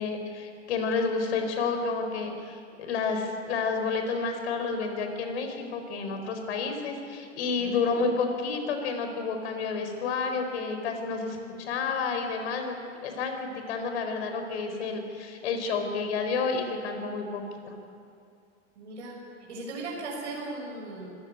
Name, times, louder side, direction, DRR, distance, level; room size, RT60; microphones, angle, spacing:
voice 1, 0.0-12.8 13.0-17.8, left 4 dB, 65° left, 6 dB, 4.7 m, -30 dB
voice 2, 7.6-8.1 18.7-19.2 19.5-21.2, right 2 dB, 75° right, -2 dB, 6.8 m, -38 dB
25.0 x 14.5 x 9.8 m, 2.5 s
hypercardioid pair, 100°, 36 cm